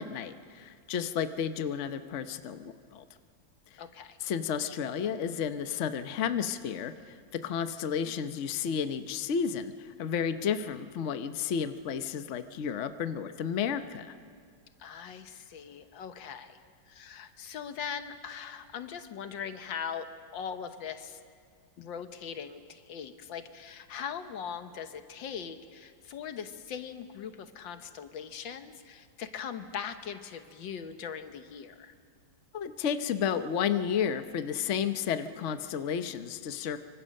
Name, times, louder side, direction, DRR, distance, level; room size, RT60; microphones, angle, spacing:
voice 1, 0.0-3.0 4.2-14.1 32.5-36.8, left 7 dB, 50° left, 10 dB, 1.0 m, -32 dB
voice 2, 3.8-4.2 14.8-16.6 16.9-20.1 20.3-21.2 21.8-31.9, left 7 dB, 80° left, 9 dB, 1.8 m, -40 dB
25.0 x 24.5 x 6.5 m, 2.1 s
omnidirectional pair, 2.0 m